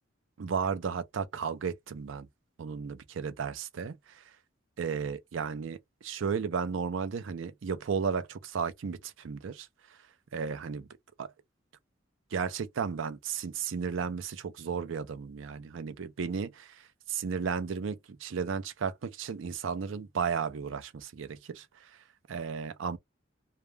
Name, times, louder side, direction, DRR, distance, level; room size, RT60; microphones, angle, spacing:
voice 1, 0.4-2.3 2.6-4.2 4.8-10.0 10.3-10.9 11.2-11.3 12.3-22.0 22.3-23.0, right 6 dB, 75° right, 0.4 m, -34 dB
2.3 x 2.1 x 3.1 m
head